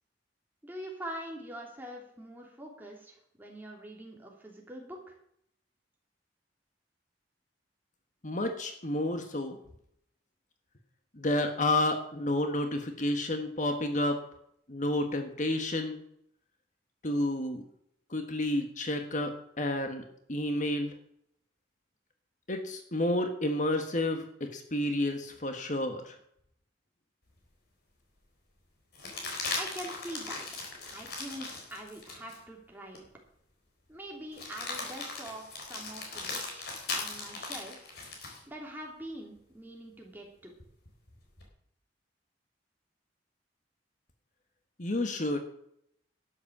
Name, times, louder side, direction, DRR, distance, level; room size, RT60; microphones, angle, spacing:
voice 1, 0.6-5.1 29.6-30.4 30.9-33.1 33.9-36.7 37.0-37.9 38.5-40.5, right 1 dB, 10° right, -1 dB, 3.2 m, -44 dB
voice 2, 8.2-9.6 11.1-14.2 14.7-16.0 17.0-17.6 18.1-20.9 22.5-26.1 44.8-45.4, left 1 dB, 45° left, 6 dB, 1.4 m, -30 dB
sound 1, 27.4-27.5 28.9-32.4 32.9-33.1 34.3-38.4 40.6-41.5, left 3 dB, 60° left, 4.1 m, -38 dB
12.0 x 8.3 x 7.4 m, 0.71 s
head